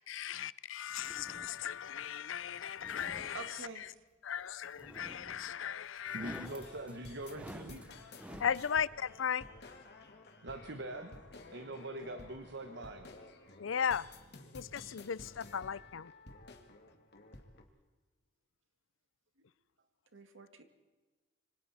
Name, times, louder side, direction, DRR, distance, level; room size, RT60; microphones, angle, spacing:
voice 1, 0.1-3.9 4.2-6.5 8.4-9.5 13.6-14.1 14.5-16.1, left 8 dB, 85° left, 0.5 m, -37 dB
sound 1, 0.9-1.7 2.6-3.9 4.8-5.6 6.0-8.6, right 1 dB, 5° right, 0.7 m, -51 dB
voice 2, 3.3-3.9 19.4-19.5 20.1-20.6, right 3 dB, 80° right, 2.2 m, -47 dB
voice 3, 6.1-7.8 10.4-11.2 11.5-13.1, right 2 dB, 65° right, 1.3 m, -43 dB
sound 2, 6.4-17.6, left 2 dB, 60° left, 2.3 m, -53 dB
26.5 x 25.0 x 4.3 m
head